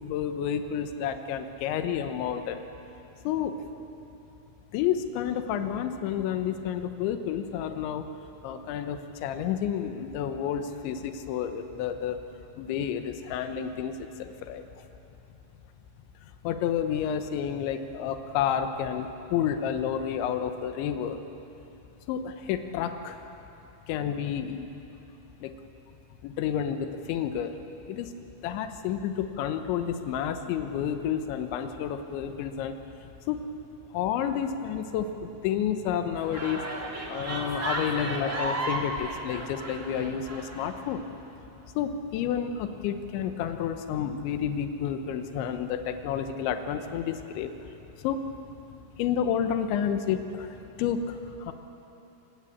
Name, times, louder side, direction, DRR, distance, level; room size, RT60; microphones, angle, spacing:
voice 1, 0.0-2.6 3.3-3.6 4.7-8.1 8.4-12.2 12.6-14.6 16.5-21.2 22.1-23.2 23.9-24.7 25.4-25.5 26.2-27.6 27.9-28.1 28.4-32.8 33.3-33.5 33.9-36.7 37.1-41.0 41.8-47.5 48.0-48.2 49.0-51.5, left 8 dB, 85° left, 8 dB, 3.4 m, -30 dB
sound 1, 36.1-40.7, right 2 dB, 25° right, 2.0 m, -34 dB
25.5 x 20.5 x 8.6 m, 3.0 s
omnidirectional pair, 5.2 m